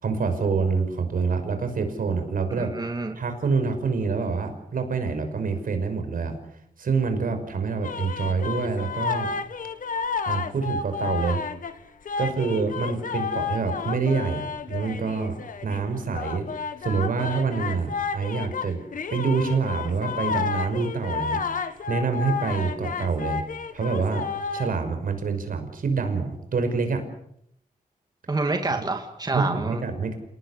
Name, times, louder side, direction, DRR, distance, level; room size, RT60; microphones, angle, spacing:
voice 1, 0.0-2.7 3.2-6.3 6.8-9.3 10.3-11.4 12.2-15.4 15.6-16.5 16.8-18.8 19.1-23.4 23.7-24.2 24.5-27.0 29.3-30.2, right 4 dB, 70° right, 7 dB, 5.7 m, -26 dB
voice 2, 2.6-3.2 28.3-29.8, right 3 dB, 25° right, 4 dB, 2.4 m, -27 dB
sound 1, 7.8-11.7 12.0-15.8 16.1-24.8, left 5 dB, 65° left, 1.8 m, -31 dB
28.0 x 19.0 x 8.3 m, 0.73 s
wide cardioid pair, 120°, 15 cm